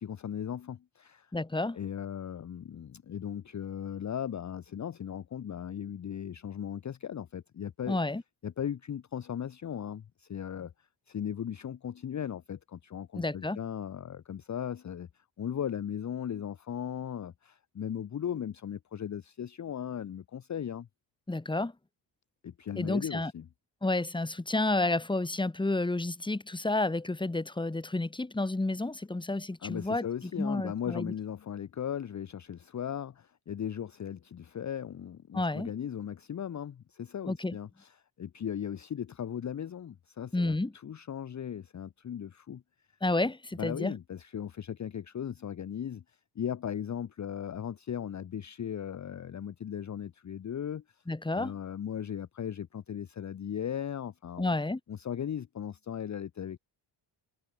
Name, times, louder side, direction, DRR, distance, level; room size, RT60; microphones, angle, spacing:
voice 1, 0.0-1.3 1.7-8.0 8.4-20.9 22.4-23.4 29.6-42.6 43.6-51.0 51.3-54.6 54.9-56.6, left 9 dB, 35° left, 0.9 m, -37 dB
voice 2, 1.3-1.8 7.9-8.2 13.2-13.6 21.3-21.7 22.8-23.3 23.8-30.1 30.4-31.1 35.3-35.7 37.3-37.6 40.3-40.7 43.0-43.9 51.1-51.5 54.4-54.8, left 2 dB, 10° left, 2.0 m, -30 dB
cardioid pair, 145°, 49 cm